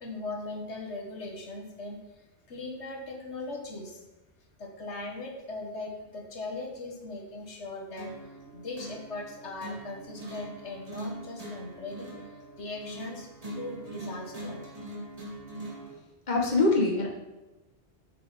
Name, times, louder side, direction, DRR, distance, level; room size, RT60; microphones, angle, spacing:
voice 1, 0.0-2.0 2.5-4.0 4.6-8.1 8.5-12.2 12.6-13.3 13.6-14.6, left 2 dB, 90° left, 1 dB, 1.8 m, -39 dB
sound 1, 8.0-16.0, right 1 dB, 35° right, 2.3 m, -42 dB
voice 2, 16.3-17.1, left 3 dB, 40° left, 0 dB, 1.8 m, -23 dB
9.7 x 6.7 x 5.2 m, 1.0 s
omnidirectional pair, 1.1 m